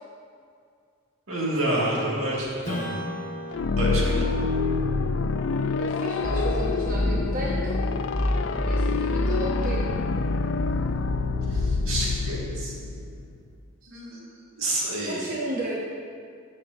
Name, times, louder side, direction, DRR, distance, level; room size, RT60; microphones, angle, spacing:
voice 1, 1.3-2.9 3.8-4.3 11.5-12.7 13.9-14.2 14.5-15.2, right 1 dB, 75° right, -4 dB, 2.0 m, -28 dB
Strum, 2.6-7.6, equal, 35° left, 1.9 m, -38 dB
sound 1, 3.5-13.2, left 4 dB, 60° left, 0.3 m, -27 dB
voice 2, 5.8-7.8 8.6-9.9 13.8-13.9 15.1-15.8, right 1 dB, 40° right, -4 dB, 0.8 m, -33 dB
sound 2, 6.2-13.4, left 1 dB, 15° left, 0.6 m, -29 dB
13.5 x 6.6 x 2.7 m, 2.2 s
head